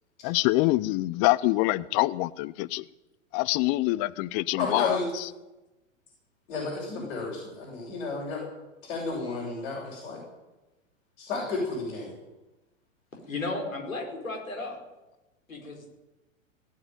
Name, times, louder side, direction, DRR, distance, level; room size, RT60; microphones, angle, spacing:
voice 1, 0.2-2.9 3.3-5.3, left 19 dB, 35° left, 19 dB, 0.6 m, -25 dB
voice 2, 4.6-5.1 6.5-8.4 8.8-10.2 11.2-12.1, left 3 dB, 60° left, -5 dB, 7.1 m, -32 dB
voice 3, 13.3-14.8 15.5-15.9, left 2 dB, 85° left, 1 dB, 5.0 m, -34 dB
18.5 x 7.9 x 9.3 m, 1.1 s
figure-of-eight pair, 100°, 39 cm